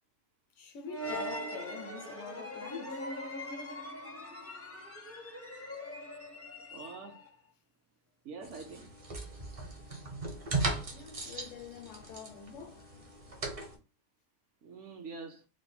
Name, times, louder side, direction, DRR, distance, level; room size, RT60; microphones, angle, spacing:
voice 1, 0.5-3.1 10.9-12.9, left 6 dB, 70° left, 0.9 m, -46 dB
sound 1, 0.9-7.3, equal, 20° left, 0.4 m, -41 dB
voice 2, 6.7-7.2 8.2-8.9 14.6-15.5, right 4 dB, 65° right, 1.0 m, -45 dB
sound 2, 8.4-13.7, right 2 dB, 35° right, 0.6 m, -38 dB
3.3 x 2.1 x 4.0 m
omnidirectional pair, 1.5 m